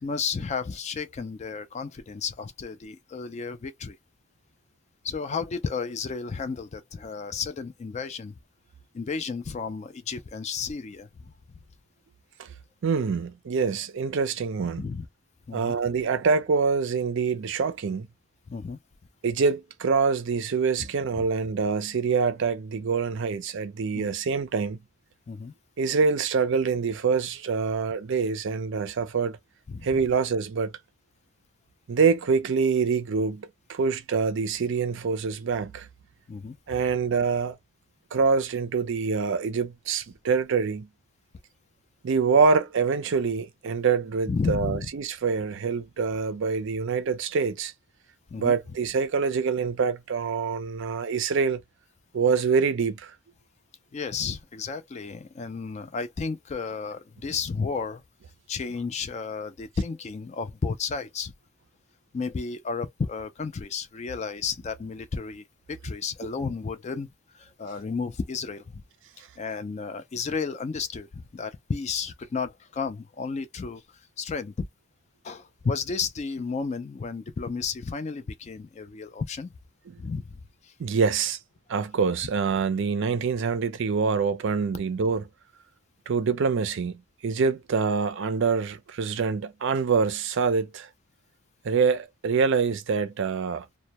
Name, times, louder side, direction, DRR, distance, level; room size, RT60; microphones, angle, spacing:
voice 1, 0.0-4.0 5.0-8.3 8.9-11.1 14.8-15.1 15.5-15.7 18.5-18.8 21.2-21.3 23.9-24.1 25.3-25.5 29.7-29.9 36.3-36.6 44.3-44.9 48.3-48.5 53.9-58.0 58.5-61.3 62.1-67.1 67.3-68.8 69.4-73.8 74.2-74.7 75.2-79.5 80.0-80.4 80.6-80.7, left 5 dB, 30° left, 0.3 m, -32 dB
voice 2, 12.8-14.9 15.5-18.1 19.2-24.8 25.8-29.4 29.8-30.7 31.9-35.9 36.7-37.6 38.1-40.9 42.0-47.7 48.4-51.6 52.1-53.1 66.2-66.3 79.9-80.0 80.8-81.4 81.7-85.2 86.1-90.9 91.6-93.7, right 5 dB, 60° right, 0.4 m, -25 dB
2.1 x 2.0 x 2.8 m
head